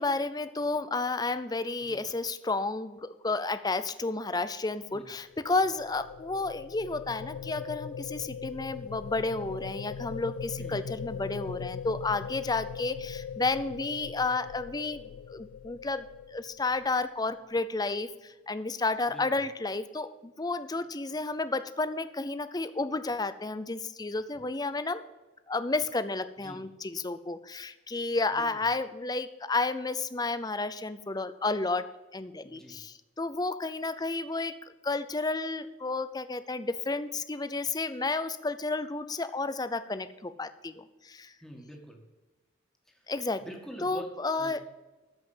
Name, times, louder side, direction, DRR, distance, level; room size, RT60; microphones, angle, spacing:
voice 1, 0.0-25.0 25.5-34.6 34.8-41.3 43.1-43.4 43.8-44.6, left 3 dB, 20° left, 12 dB, 0.6 m, -31 dB
sound 1, 5.1-17.3, left 7 dB, 90° left, 0.4 m, -40 dB
voice 2, 10.6-10.9 19.1-19.4 26.4-26.6 28.3-28.6 32.4-32.8 41.4-42.0 42.9-43.0 43.4-44.6, equal, ahead, 1 dB, 1.9 m, -46 dB
13.5 x 5.6 x 7.3 m, 1.2 s
head